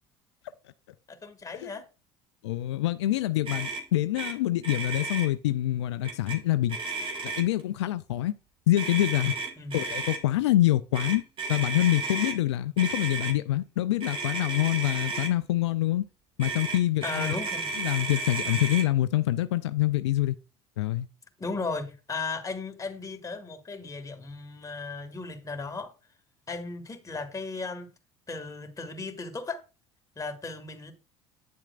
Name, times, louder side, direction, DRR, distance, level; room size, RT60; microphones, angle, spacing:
voice 1, 1.1-1.9 9.6-9.8 17.0-17.7 18.2-18.3 21.4-25.9 26.5-27.9 28.3-29.7 30.2-30.9, left 3 dB, 25° left, 1.9 m, -36 dB
voice 2, 2.4-6.8 7.2-8.3 8.7-9.3 9.7-11.2 11.5-16.0 16.4-17.3 17.8-20.4 20.8-21.1, left 14 dB, 85° left, 0.4 m, -26 dB
Motor vehicle (road), 3.5-3.8 4.2-4.3 4.6-5.3 6.0-6.4 6.7-7.6 8.8-10.2 10.9-12.4 12.8-13.3 14.0-15.3 16.4-18.9, right 3 dB, 40° right, 2.0 m, -33 dB
9.4 x 7.3 x 2.4 m
hypercardioid pair, 75°, 14 cm